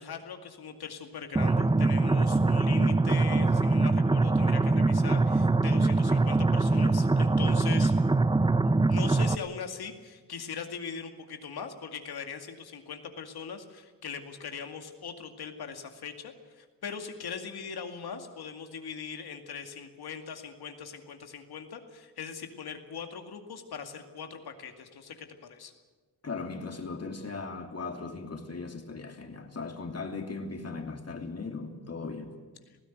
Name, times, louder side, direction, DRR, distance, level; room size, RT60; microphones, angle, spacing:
voice 1, 0.0-7.9 8.6-25.7, left 6 dB, 65° left, 6 dB, 2.3 m, -40 dB
sound 1, 1.4-9.4, right 3 dB, 10° right, 0.6 m, -23 dB
voice 2, 26.2-32.4, left 4 dB, 40° left, 4 dB, 3.0 m, -38 dB
19.5 x 16.0 x 9.3 m, 1.4 s
supercardioid pair, 45°, 40 cm